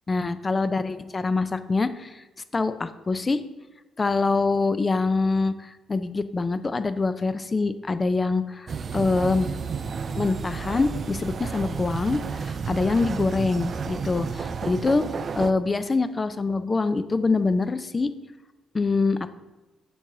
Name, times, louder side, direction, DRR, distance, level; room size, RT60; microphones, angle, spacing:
voice 1, 0.1-2.2 2.5-3.4 4.0-9.5 10.2-15.0 15.4-18.1 18.7-19.2, left 3 dB, 30° left, 13 dB, 0.4 m, -25 dB
sound 1, 8.7-15.5, right 5 dB, 45° right, 0.3 m, -31 dB
6.9 x 5.4 x 3.7 m, 1.1 s
cardioid pair, 90°, 0 cm